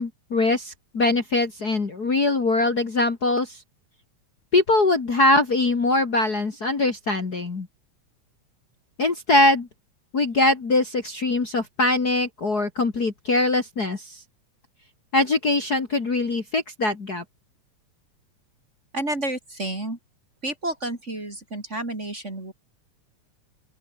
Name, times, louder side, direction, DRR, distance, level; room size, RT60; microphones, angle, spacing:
voice 1, 0.0-3.5 4.5-7.7 9.0-9.7 10.1-14.0 15.1-17.2, left 2 dB, 35° left, 2.6 m, -22 dB
voice 2, 18.9-20.0 20.4-22.5, right 1 dB, 25° right, 3.6 m, -30 dB
open air
omnidirectional pair, 3.4 m